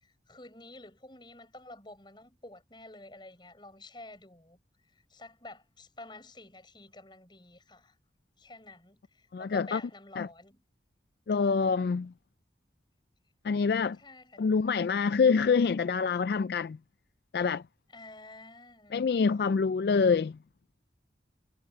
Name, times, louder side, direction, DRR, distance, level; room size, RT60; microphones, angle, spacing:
voice 1, 0.0-4.6 4.9-8.0 8.4-10.6 14.0-14.7 17.9-19.0, left 2 dB, 25° left, 6.2 m, -50 dB
voice 2, 9.3-9.8 10.2-10.3 11.3-12.1 13.4-14.0 14.4-16.8 17.3-17.6 18.9-20.4, left 5 dB, 65° left, 0.3 m, -26 dB
head